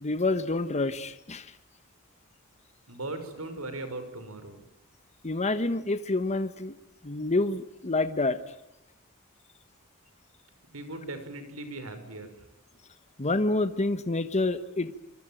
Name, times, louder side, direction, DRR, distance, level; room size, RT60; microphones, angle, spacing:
voice 1, 0.0-1.5 5.2-6.7 7.0-8.4 13.2-14.9, left 2 dB, 30° left, 11 dB, 1.2 m, -28 dB
voice 2, 2.9-4.6 10.7-12.3, right 2 dB, 75° right, 9 dB, 6.0 m, -38 dB
26.5 x 24.5 x 9.1 m, 0.88 s
head